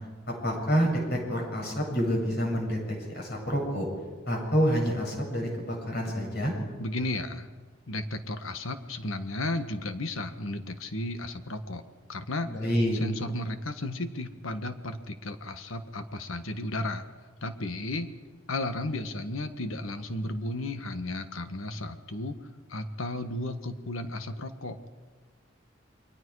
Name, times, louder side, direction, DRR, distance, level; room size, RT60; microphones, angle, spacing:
voice 1, 0.4-3.9 4.3-6.5 12.5-13.0, equal, 55° left, 0 dB, 7.2 m, -28 dB
voice 2, 6.8-7.5 7.9-11.8 12.1-12.5 13.0-17.0 17.4-18.1 18.5-22.4 22.7-24.9, left 2 dB, 80° left, 8 dB, 1.5 m, -34 dB
28.5 x 23.0 x 4.8 m, 1.4 s
head